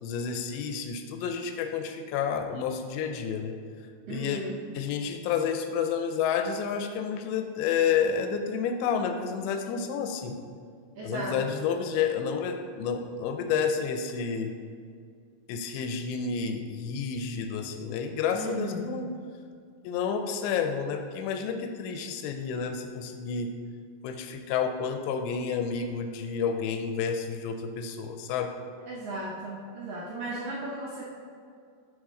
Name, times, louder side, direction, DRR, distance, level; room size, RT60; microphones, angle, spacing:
voice 1, 0.0-3.5 4.1-4.4 4.8-10.4 11.0-14.5 15.5-19.1 19.8-23.5 24.0-28.5, left 6 dB, 80° left, 6 dB, 2.6 m, -30 dB
voice 2, 4.1-4.6 11.0-11.5 18.3-18.8 28.9-31.1, right 1 dB, 80° right, -5 dB, 2.0 m, -36 dB
9.5 x 5.8 x 3.7 m, 2.2 s
omnidirectional pair, 5.3 m